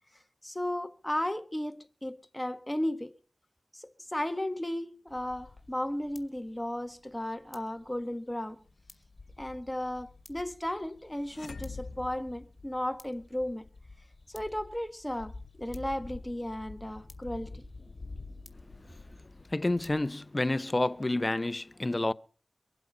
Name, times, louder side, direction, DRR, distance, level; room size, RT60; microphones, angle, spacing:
voice 1, 0.4-3.1 3.7-8.6 9.4-13.7 14.3-17.6, left 1 dB, 15° left, 1.4 m, -35 dB
sound 1, 5.1-20.0, left 3 dB, 60° left, 2.2 m, -50 dB
sound 2, 11.2-13.3, left 4 dB, 80° left, 0.6 m, -44 dB
voice 2, 19.5-22.1, left 2 dB, 35° left, 0.7 m, -29 dB
24.0 x 8.0 x 5.5 m
cardioid pair, 40°, 0 cm